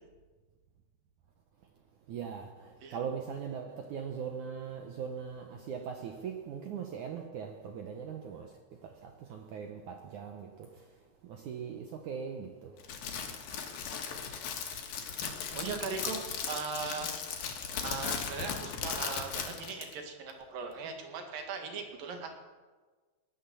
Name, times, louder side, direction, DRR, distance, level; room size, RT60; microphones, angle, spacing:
voice 1, 2.1-8.5 8.8-10.7 11.3-12.7, right 7 dB, 75° right, 1.8 m, -40 dB
Crackle, 12.8-19.9, left 7 dB, 60° left, 3.0 m, -37 dB
voice 2, 15.2-17.3 17.8-22.4, right 5 dB, 60° right, 3.4 m, -39 dB
18.0 x 11.0 x 7.1 m
omnidirectional pair, 4.9 m